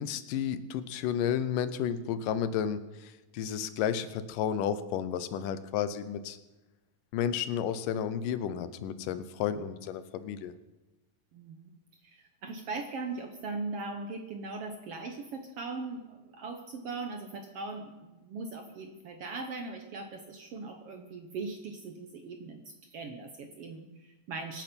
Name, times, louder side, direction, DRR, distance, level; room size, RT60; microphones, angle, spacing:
voice 1, 0.0-6.4 7.1-10.5, left 9 dB, 80° left, 13 dB, 2.4 m, -32 dB
voice 2, 11.3-11.7 12.0-22.6 22.9-24.6, right 3 dB, 65° right, 5 dB, 1.6 m, -40 dB
24.5 x 8.9 x 5.3 m, 1.1 s
omnidirectional pair, 3.8 m